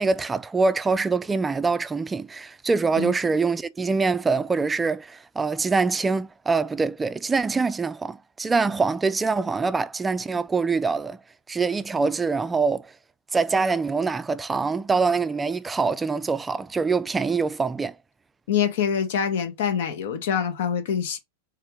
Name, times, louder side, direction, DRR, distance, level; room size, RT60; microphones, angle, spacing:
voice 1, 0.0-11.2 11.5-12.9 13.3-17.9, right 4 dB, 15° right, 0.3 m, -24 dB
voice 2, 18.5-21.2, left 8 dB, 65° left, 0.9 m, -25 dB
3.5 x 3.4 x 3.0 m
hypercardioid pair, 105°, 0 cm